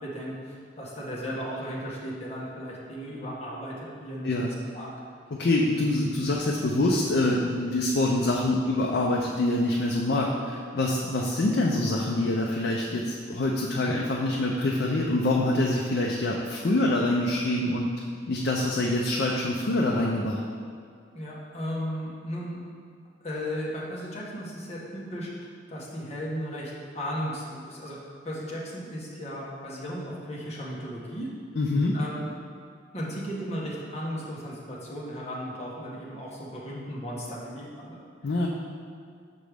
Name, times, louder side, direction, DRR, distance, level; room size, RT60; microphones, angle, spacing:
voice 1, 0.0-4.9 13.8-14.0 21.1-22.6 23.2-25.3 25.7-28.0 28.2-31.3 31.9-32.3 32.9-38.4, equal, 35° left, -5 dB, 1.1 m, -35 dB
voice 2, 5.3-17.9 18.3-20.4 31.6-32.0 38.2-38.5, left 2 dB, 60° left, -2 dB, 0.5 m, -25 dB
6.1 x 5.2 x 3.4 m, 2.1 s
head